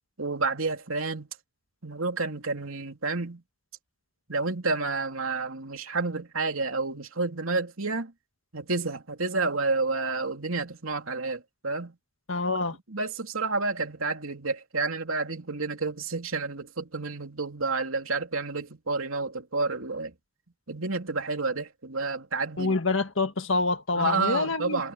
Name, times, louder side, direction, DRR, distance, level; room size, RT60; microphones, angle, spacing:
voice 1, 0.2-1.3 1.8-3.4 4.3-8.1 8.5-11.9 12.9-20.1 20.7-22.7 23.9-24.9, right 3 dB, 75° right, 3.0 m, -30 dB
voice 2, 12.3-12.8 22.6-24.9, left 3 dB, 65° left, 1.8 m, -26 dB
head